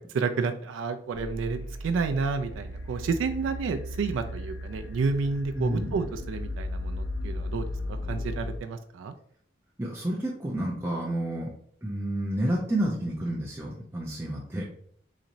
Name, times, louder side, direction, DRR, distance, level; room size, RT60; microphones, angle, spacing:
voice 1, 0.1-9.1, right 4 dB, 90° right, 8 dB, 0.3 m, -30 dB
sound 1, 1.1-8.6, left 1 dB, 65° left, 0.4 m, -36 dB
voice 2, 5.5-6.0 9.8-11.5 11.8-14.6, right 1 dB, 15° right, -4 dB, 0.5 m, -30 dB
4.0 x 2.9 x 2.5 m, 0.62 s
head